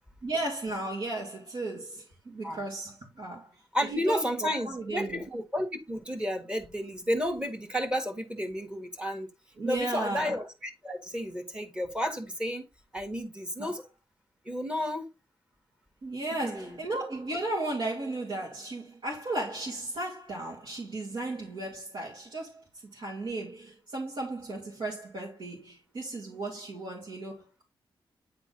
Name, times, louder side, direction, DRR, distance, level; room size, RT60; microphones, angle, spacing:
voice 1, 0.2-3.5 3.9-5.2 9.6-10.4 13.6-13.7 16.0-22.6 22.9-27.6, right 2 dB, 65° right, 2.5 m, -35 dB
voice 2, 3.7-9.3 9.6-12.7 12.9-13.8 14.4-15.1 16.4-16.8, equal, 10° right, 1.7 m, -32 dB
9.7 x 3.9 x 3.9 m
wide cardioid pair, 140°, 9 cm